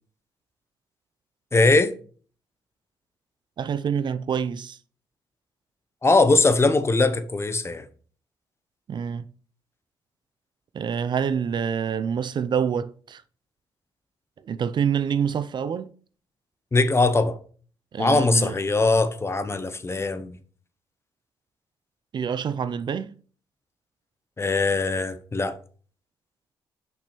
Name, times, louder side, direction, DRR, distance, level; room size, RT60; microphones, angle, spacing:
voice 1, 1.5-1.9 6.0-7.8 16.7-17.4 18.0-20.3 24.4-25.6, left 3 dB, 25° left, 0.8 m, -21 dB
voice 2, 3.6-4.8 8.9-9.3 10.7-13.2 14.4-15.9 17.9-18.5 22.1-23.1, right 7 dB, 50° right, 0.4 m, -26 dB
5.8 x 5.3 x 4.4 m
cardioid pair, 75°, 10 cm